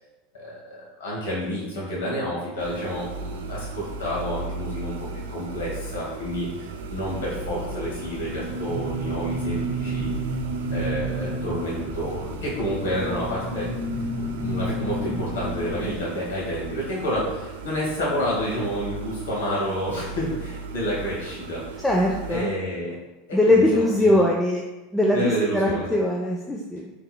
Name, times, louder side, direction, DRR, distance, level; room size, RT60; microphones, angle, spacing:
voice 1, 0.3-5.0 5.3-10.1 10.7-13.7 14.1-21.8 22.3-23.0 23.3-24.2 25.1-25.9, equal, 75° left, -6 dB, 1.2 m, -29 dB
sound 1, 2.6-22.4, right 4 dB, 70° right, 0.3 m, -36 dB
sound 2, 6.8-16.0, right 1 dB, 45° left, 0.7 m, -31 dB
voice 2, 21.8-22.5 23.3-24.6 24.9-26.9, left 1 dB, 5° left, -2 dB, 0.4 m, -21 dB
3.7 x 3.0 x 2.2 m, 1.0 s
hypercardioid pair, 85°, 0 cm